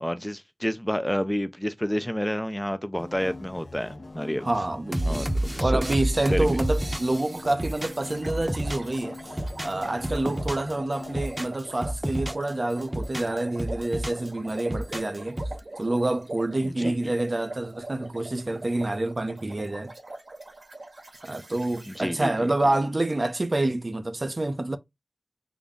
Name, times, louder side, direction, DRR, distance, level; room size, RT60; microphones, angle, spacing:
voice 1, 0.0-4.5 5.1-5.3 5.5-5.8 6.3-6.6 16.6-17.1 21.9-22.5, equal, 10° left, 0.4 m, -29 dB
sound 1, 3.0-11.3, left 2 dB, 80° left, 0.7 m, -42 dB
voice 2, 4.4-9.2 9.6-15.4 15.8-19.9 21.2-24.8, right 2 dB, 55° right, 0.6 m, -27 dB
sound 2, 4.9-9.0 9.3-10.7 11.0-12.5 12.8-14.3 14.6-15.6, right 1 dB, 15° right, 0.7 m, -29 dB
sound 3, 6.6-22.0, right 2 dB, 80° right, 1.7 m, -43 dB
3.8 x 2.2 x 3.5 m
wide cardioid pair, 40°, 0 cm